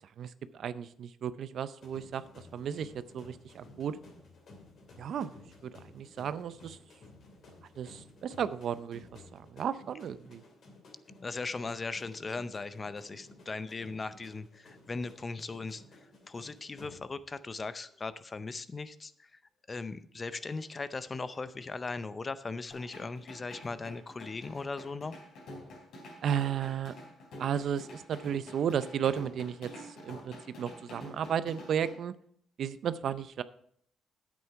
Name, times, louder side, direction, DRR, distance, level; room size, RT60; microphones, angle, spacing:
voice 1, 0.2-2.2 2.5-4.0 5.0-5.3 5.6-6.8 7.8-10.4 26.2-26.9 27.4-32.1 32.6-33.4, right 8 dB, 65° right, 15 dB, 0.5 m, -34 dB
sound 1, 1.8-17.4 17.7-18.0 20.3-21.6, left 2 dB, 60° left, 2.8 m, -55 dB
voice 2, 11.2-16.0 16.3-19.4 19.7-25.2, left 3 dB, 30° left, 14 dB, 0.6 m, -38 dB
sound 2, 22.7-31.9, left 1 dB, 75° left, 4.1 m, -48 dB
9.4 x 8.5 x 4.6 m, 0.64 s
cardioid pair, 90°, 0 cm